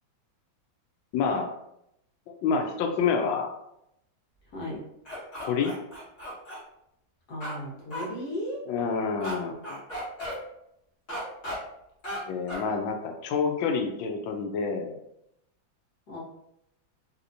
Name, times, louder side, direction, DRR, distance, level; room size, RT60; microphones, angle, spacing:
voice 1, 1.1-1.5 2.4-3.5 5.4-5.7 8.7-9.8 12.2-15.0, left 5 dB, 80° left, 4 dB, 1.3 m, -28 dB
voice 2, 4.5-4.8 7.3-8.6 16.1-16.2, equal, 55° left, -5 dB, 1.5 m, -35 dB
sound 1, 5.1-6.6 7.4-7.6 7.9-8.0 9.2-9.3 9.6-10.4 11.1-11.6 12.0-12.2 12.5-12.6, equal, 35° left, 1.4 m, -35 dB
3.4 x 2.8 x 2.5 m, 0.80 s
omnidirectional pair, 2.1 m